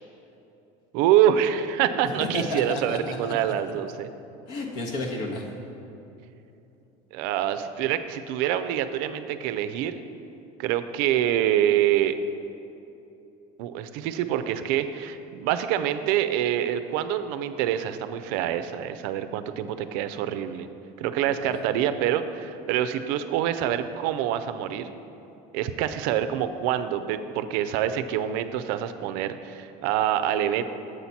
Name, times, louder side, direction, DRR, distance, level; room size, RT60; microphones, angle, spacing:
voice 1, 0.9-4.1 7.1-10.0 10.6-12.2 13.6-20.7 21.0-24.9 25.5-30.6, right 11 dB, 65° right, 10 dB, 0.4 m, -26 dB
voice 2, 2.2-3.3 4.5-5.5 21.3-21.6, left 2 dB, 70° left, 0 dB, 1.3 m, -32 dB
7.9 x 4.1 x 5.8 m, 2.9 s
cardioid pair, 170°, 17 cm